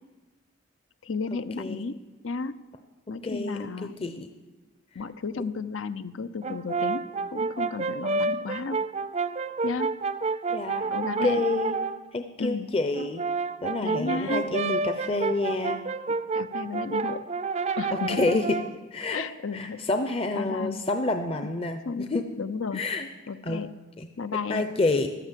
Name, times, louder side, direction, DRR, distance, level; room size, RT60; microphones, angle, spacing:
voice 1, 1.0-2.6 3.1-4.1 4.9-7.0 7.3-8.8 9.6-10.0 10.9-11.4 12.4-12.7 13.8-14.5 16.3-17.3 17.8-18.4 19.1-19.9 20.4-20.8 21.8-22.8 23.3-23.7 24.2-24.7, left 4 dB, 80° left, 13 dB, 0.7 m, -33 dB
voice 2, 3.2-4.3 5.4-5.5 10.5-11.8 12.1-13.2 13.6-15.8 17.9-18.6 18.9-19.2 19.5-22.2 22.7-23.1 23.4-23.6 24.0-24.1 24.5-25.1, left 2 dB, 30° left, 7 dB, 0.7 m, -28 dB
Brass instrument, 6.4-12.0 12.9-18.8, right 4 dB, 35° right, 0.4 m, -29 dB
15.0 x 12.0 x 7.5 m, 1.2 s
head